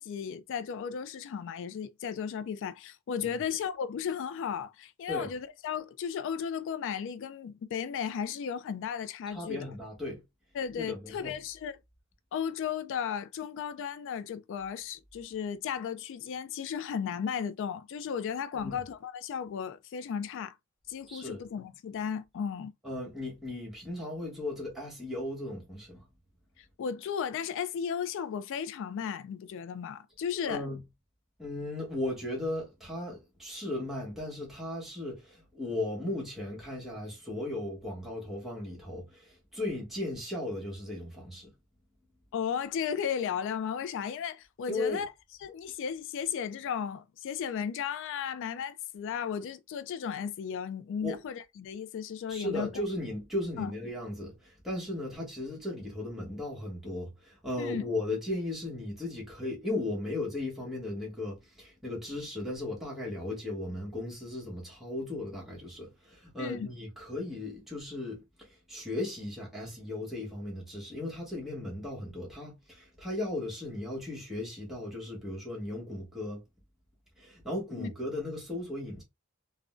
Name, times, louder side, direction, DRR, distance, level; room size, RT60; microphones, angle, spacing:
voice 1, 0.0-9.6 10.5-11.8 12.3-20.5 20.9-22.7 26.6-30.6 42.3-45.1 45.4-52.7 53.6-53.7 57.6-57.8 66.4-66.7 77.8-77.9, left 7 dB, 60° left, 0.3 m, -35 dB
voice 2, 9.3-10.2 10.8-11.4 18.5-18.8 21.1-21.4 22.8-26.0 30.4-30.8 31.4-41.5 44.7-45.0 51.0-51.2 52.3-76.4 77.2-79.0, left 2 dB, ahead, 1.0 m, -36 dB
3.6 x 2.1 x 2.4 m
head